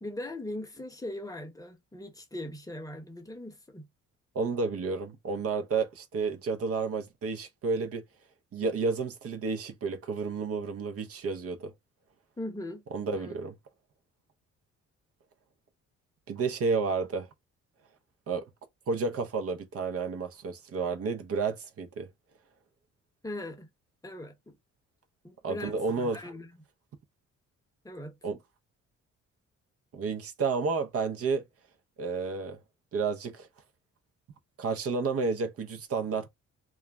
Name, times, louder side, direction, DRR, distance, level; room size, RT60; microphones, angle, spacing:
voice 1, 0.0-3.9 12.4-12.8 13.1-13.4 23.2-23.7 24.0-24.5 25.2-26.5 27.8-28.2, left 1 dB, 10° left, 0.8 m, -40 dB
voice 2, 4.3-8.0 8.5-11.7 12.9-13.5 16.3-17.3 18.3-18.5 18.9-22.1 25.4-26.3 28.2-28.4 29.9-31.4 32.0-32.6 32.9-33.5 34.6-36.3, right 4 dB, 50° right, 0.7 m, -31 dB
2.3 x 2.0 x 3.3 m
cardioid pair, 90°, 30 cm